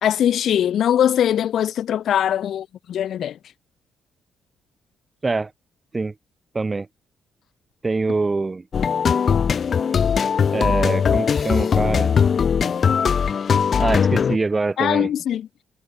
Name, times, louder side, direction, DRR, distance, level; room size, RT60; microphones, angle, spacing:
voice 1, 0.0-3.4 14.8-15.6, left 10 dB, 65° left, 1.8 m, -21 dB
voice 2, 6.5-6.9 7.8-8.6 10.5-12.1 13.8-15.1, right 3 dB, 25° right, 2.2 m, -24 dB
sound 1, 8.7-14.4, left 6 dB, 50° left, 4.2 m, -19 dB
cardioid pair, 90°, 0 cm